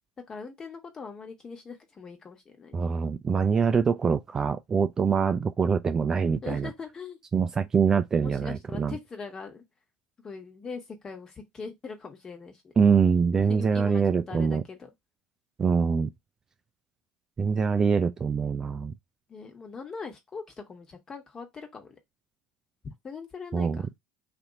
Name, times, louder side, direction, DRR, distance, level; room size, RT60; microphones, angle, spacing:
voice 1, 0.3-2.9 6.3-7.2 8.2-9.6 10.2-12.7 13.5-14.0 14.3-14.9 19.3-21.9 22.8-23.9, left 5 dB, 30° left, 1.3 m, -41 dB
voice 2, 2.7-6.7 7.3-9.0 12.8-14.6 15.6-16.1 17.4-18.9 23.5-23.8, right 6 dB, 25° right, 0.3 m, -24 dB
2.8 x 2.6 x 4.0 m
hypercardioid pair, 80°, 2 cm